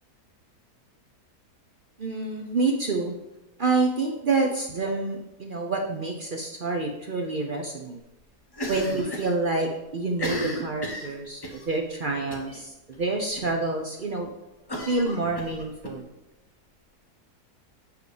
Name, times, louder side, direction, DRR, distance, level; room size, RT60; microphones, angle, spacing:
voice 1, 2.0-3.1 3.6-8.0 8.6-14.3 14.9-16.0, right 3 dB, 55° right, 2 dB, 0.5 m, -28 dB
Cough, 8.5-9.3 9.6-9.7 10.1-11.6 12.3-12.6 12.9-13.0 13.4-13.5 14.7-15.9, equal, 20° left, 0.7 m, -33 dB
6.8 x 4.8 x 4.9 m, 0.95 s
omnidirectional pair, 1.7 m